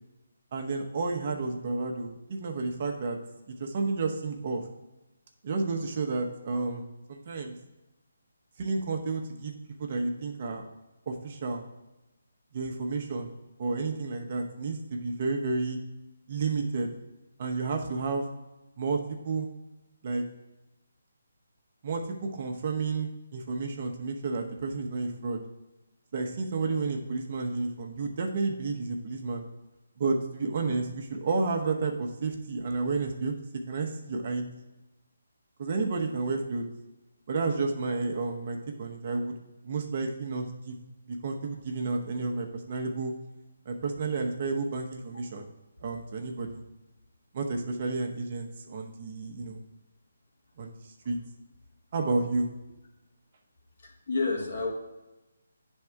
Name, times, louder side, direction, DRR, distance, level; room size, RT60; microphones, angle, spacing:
voice 1, 0.5-3.2 3.5-4.6 5.4-7.5 8.6-9.5 9.8-10.6 11.1-11.6 12.5-13.3 13.6-15.8 16.3-16.9 17.4-18.3 18.8-19.5 20.0-20.2 21.8-25.4 26.1-29.4 30.0-33.4 33.7-34.5 35.6-36.7 37.3-39.4 39.6-40.8 41.2-43.1 43.7-45.5 45.8-46.6 47.3-49.6 50.6-50.7 51.0-51.2 51.9-52.5, right 3 dB, 40° right, 3 dB, 0.8 m, -31 dB
voice 2, 53.8-54.7, left 3 dB, 55° left, 0 dB, 1.7 m, -30 dB
9.6 x 3.6 x 4.5 m, 1.0 s
hypercardioid pair, 160°, 0 cm